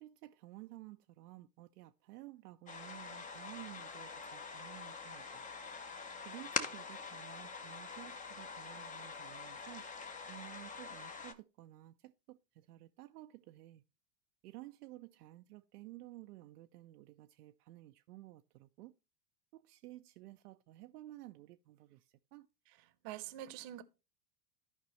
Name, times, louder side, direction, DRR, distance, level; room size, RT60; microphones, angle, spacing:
voice 1, 0.0-5.2 6.3-9.8 10.3-11.9 12.3-12.4 12.7-13.8 14.4-18.9 19.5-22.0 22.3-22.5, right 17 dB, 70° right, 0.6 m, -53 dB
sound 1, 2.7-11.3, left 5 dB, 15° left, 0.7 m, -44 dB
voice 2, 22.7-23.8, right 13 dB, 45° right, 0.9 m, -46 dB
14.0 x 5.1 x 3.1 m
hypercardioid pair, 95°, 50 cm